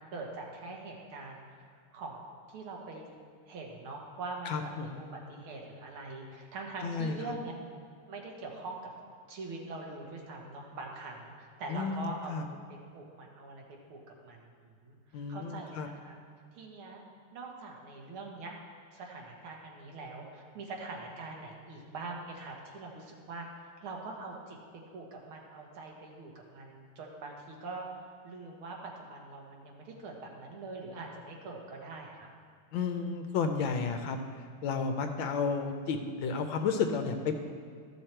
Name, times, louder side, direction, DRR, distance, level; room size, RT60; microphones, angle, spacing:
voice 1, 0.1-1.4 1.9-2.2 2.5-3.1 3.5-7.5 8.1-8.8 9.3-12.3 12.7-16.2 16.5-17.0 17.3-18.6 18.9-24.6 24.9-27.9 28.2-32.3, right 3 dB, 75° right, 0 dB, 2.1 m, -43 dB
voice 2, 4.5-5.1 6.8-7.2 11.7-12.5 15.1-15.9 32.7-34.2 34.6-37.3, left 5 dB, 70° left, 6 dB, 1.3 m, -32 dB
13.5 x 6.5 x 4.4 m, 2.1 s
omnidirectional pair, 2.4 m